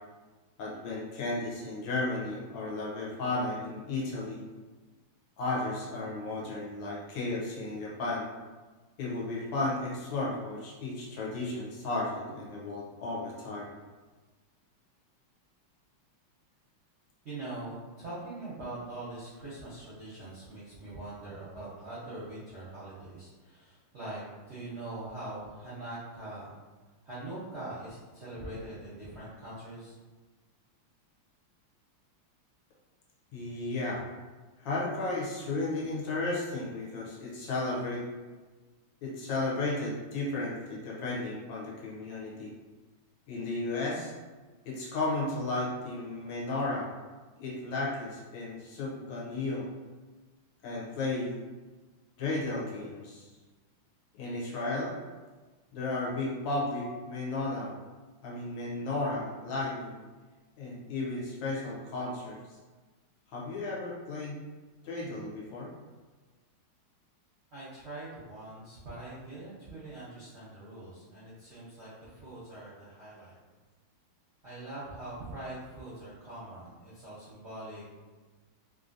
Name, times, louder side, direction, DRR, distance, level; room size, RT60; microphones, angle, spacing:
voice 1, 0.6-4.4 5.4-8.3 9.0-13.7 33.3-34.0 34.6-38.0 39.0-42.5 43.3-44.1 44.6-46.9 47.4-49.7 50.6-51.4 52.2-53.3 54.2-54.9 55.7-57.7 58.2-60.0 60.6-62.4 63.3-64.3 64.8-65.7, left 2 dB, 70° left, -4 dB, 1.3 m, -34 dB
voice 2, 17.2-26.6 27.0-30.0 67.5-73.3 74.4-77.8, right 2 dB, 65° right, -10 dB, 0.6 m, -43 dB
3.3 x 2.5 x 2.5 m, 1.3 s
omnidirectional pair, 2.3 m